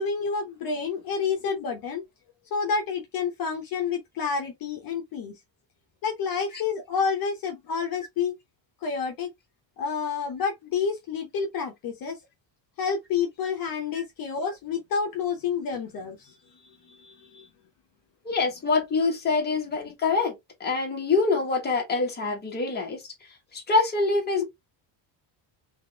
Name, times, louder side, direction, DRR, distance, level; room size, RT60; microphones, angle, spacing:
voice 1, 0.0-2.0 2.5-5.3 6.0-8.4 8.8-9.3 9.8-12.2 12.8-16.3 16.9-17.5, left 5 dB, 50° left, 1.0 m, -29 dB
voice 2, 18.2-20.3 20.6-23.0 23.5-24.4, left 4 dB, 20° left, 1.4 m, -25 dB
4.0 x 2.5 x 3.4 m
cardioid pair, 175°, 45 cm